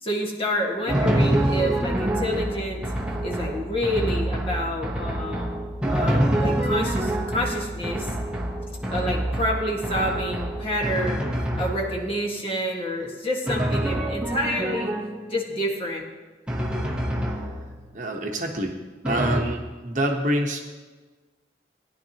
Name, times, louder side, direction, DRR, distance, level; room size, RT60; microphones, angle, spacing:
voice 1, 0.0-2.8 3.2-5.5 5.9-8.1 8.9-11.2 11.5-14.9 15.3-16.0, equal, 30° left, -2 dB, 1.6 m, -28 dB
Drum, 0.9-12.2 13.5-15.4 16.5-18.0 19.0-19.4, right 1 dB, 5° right, 1.0 m, -26 dB
voice 2, 17.9-18.8 19.0-20.7, right 1 dB, 45° right, 2 dB, 1.0 m, -26 dB
16.5 x 10.0 x 2.9 m, 1.3 s
head